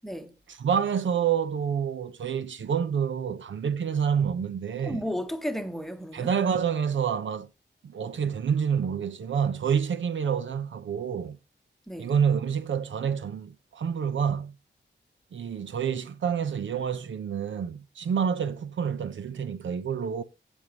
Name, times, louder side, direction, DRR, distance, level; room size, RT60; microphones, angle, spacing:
voice 1, 0.5-5.0 6.1-7.5 7.8-11.4 12.0-14.5 15.3-20.2, right 7 dB, 85° right, 0.9 m, -28 dB
voice 2, 4.8-6.3 11.9-12.1, equal, ahead, 0.9 m, -33 dB
16.5 x 5.6 x 3.0 m
wide cardioid pair, 135°, 19 cm